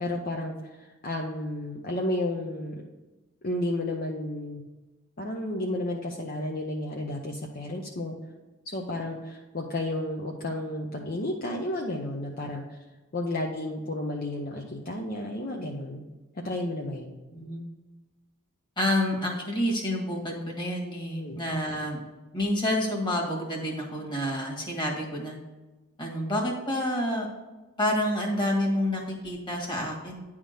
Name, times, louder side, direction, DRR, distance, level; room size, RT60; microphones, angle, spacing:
voice 1, 0.0-2.8 3.4-4.6 5.2-8.2 8.6-12.8 13.1-16.0 16.4-17.1 21.1-21.4, left 1 dB, 45° left, -1 dB, 0.8 m, -32 dB
voice 2, 17.3-17.6 18.8-22.0 22.3-25.4 26.0-27.3 27.8-30.3, left 1 dB, 20° left, -1 dB, 1.7 m, -28 dB
10.0 x 3.7 x 6.4 m, 1.2 s
head